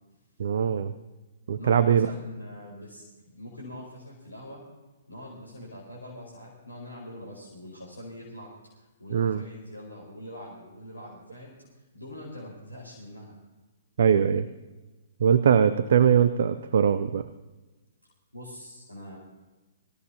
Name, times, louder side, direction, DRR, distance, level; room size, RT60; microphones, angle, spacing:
voice 1, 0.4-0.9 1.5-2.1 9.1-9.4 14.0-14.5 15.2-17.3, right 8 dB, 55° right, 13 dB, 0.6 m, -21 dB
voice 2, 1.6-4.6 5.1-8.5 8.8-11.6 11.9-13.4 18.3-19.2, left 1 dB, 85° left, -4 dB, 4.5 m, -43 dB
24.0 x 15.5 x 2.8 m, 1.2 s
figure-of-eight pair, 120°, 0 cm